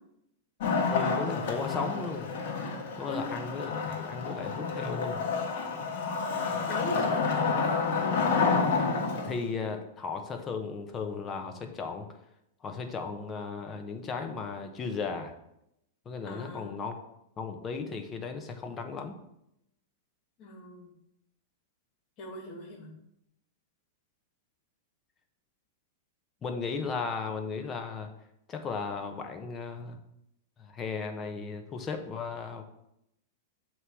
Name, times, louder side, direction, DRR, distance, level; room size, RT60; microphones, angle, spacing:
Wood, 0.6-9.5, left 4 dB, 60° left, 1.4 m, -29 dB
voice 1, 0.9-2.3 2.9-5.2 9.2-12.1 12.6-15.3 16.0-17.0 17.4-19.2 26.4-28.1 28.5-30.0 30.6-32.6, left 5 dB, 25° left, 5 dB, 1.1 m, -36 dB
voice 2, 6.6-7.8 16.2-16.7 20.4-20.9 22.2-22.9, left 1 dB, 40° left, 2 dB, 2.2 m, -39 dB
7.8 x 3.2 x 6.3 m, 0.81 s
hypercardioid pair, 115°, 0 cm